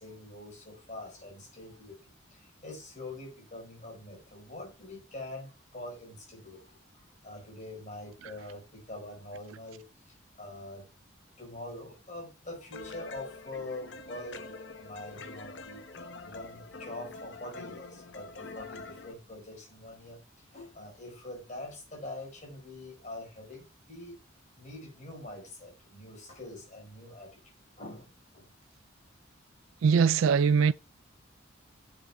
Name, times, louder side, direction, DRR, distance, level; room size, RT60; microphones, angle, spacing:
voice 1, 0.0-2.0 2.3-6.8 7.2-10.9 11.4-14.5 14.8-15.8 16.2-20.2 20.5-24.2 24.6-27.4 27.8-28.5, left 2 dB, 35° left, 4.7 m, -44 dB
sound 1, 12.7-19.1, left 3 dB, 60° left, 1.0 m, -45 dB
voice 2, 29.8-30.7, right 6 dB, 90° right, 0.4 m, -22 dB
15.5 x 7.5 x 2.3 m
head